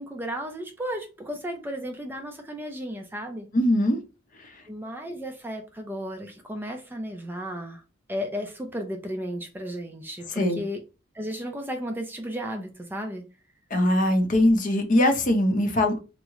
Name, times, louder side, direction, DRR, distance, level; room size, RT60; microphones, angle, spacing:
voice 1, 0.0-3.5 4.7-7.8 8.1-10.8 11.1-13.2, equal, 10° right, 0.4 m, -34 dB
voice 2, 3.5-4.0 10.4-10.6 13.7-16.0, left 1 dB, 45° left, 0.6 m, -21 dB
3.0 x 2.0 x 3.5 m
head